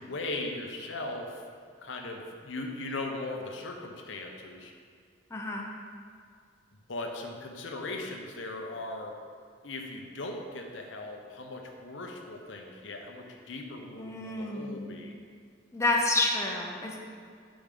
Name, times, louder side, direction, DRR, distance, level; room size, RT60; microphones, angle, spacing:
voice 1, 0.0-1.4 1.8-4.7 6.9-9.2 9.6-15.1, left 2 dB, 85° left, 2 dB, 0.8 m, -38 dB
voice 2, 5.3-5.7 14.0-15.0 15.7-17.1, left 2 dB, 15° left, -1 dB, 0.7 m, -29 dB
6.1 x 5.1 x 5.3 m, 2.2 s
head